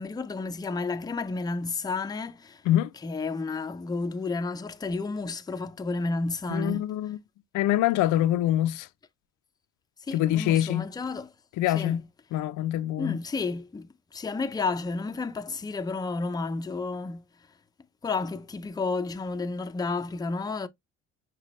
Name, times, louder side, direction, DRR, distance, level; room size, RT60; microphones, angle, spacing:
voice 1, 0.0-2.6 3.0-6.9 10.0-11.3 11.7-12.0 13.0-17.2 18.0-20.7, left 3 dB, 15° left, 0.4 m, -31 dB
voice 2, 6.5-7.2 7.5-8.9 10.1-10.9 11.6-12.0 12.3-13.2, left 13 dB, 90° left, 0.5 m, -25 dB
5.7 x 2.2 x 2.9 m
cardioid pair, 90°, 30 cm